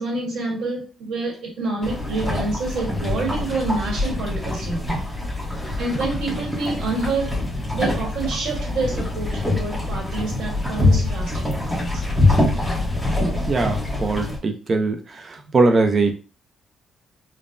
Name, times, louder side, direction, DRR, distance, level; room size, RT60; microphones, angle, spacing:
voice 1, 0.0-5.0 5.8-7.4 7.7-12.0 15.5-15.6, right 3 dB, 85° right, 1.4 m, -27 dB
sound 1, 1.8-14.4, left 2 dB, 5° right, 0.9 m, -24 dB
voice 2, 13.5-15.0 15.5-16.1, right 3 dB, 35° right, 0.6 m, -20 dB
5.3 x 2.1 x 2.6 m
cardioid pair, 135°, 0 cm